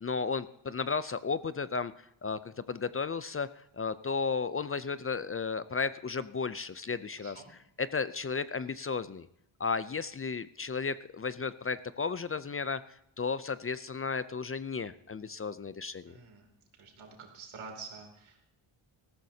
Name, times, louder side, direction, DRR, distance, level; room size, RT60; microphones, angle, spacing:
voice 1, 0.0-1.9 2.2-3.5 3.7-7.4 7.8-9.3 9.6-12.8 13.2-16.1, left 5 dB, 30° left, 15 dB, 0.4 m, -34 dB
voice 2, 7.1-7.5 16.1-16.5 16.8-18.5, right 5 dB, 85° right, 2 dB, 3.0 m, -48 dB
19.0 x 14.5 x 2.8 m, 0.75 s
cardioid pair, 100°, 47 cm